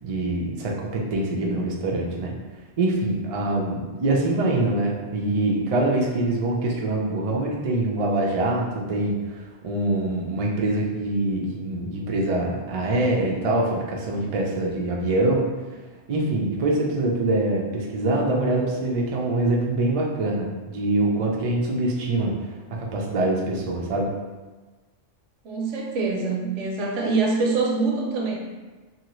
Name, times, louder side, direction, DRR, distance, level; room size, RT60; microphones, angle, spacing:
voice 1, 0.0-2.3 2.8-15.4 16.1-22.3 22.7-24.1, right 2 dB, 55° right, -2 dB, 0.4 m, -24 dB
voice 2, 25.4-28.3, right 3 dB, 80° right, -1 dB, 1.0 m, -24 dB
2.7 x 2.7 x 3.0 m, 1.3 s
omnidirectional pair, 1.2 m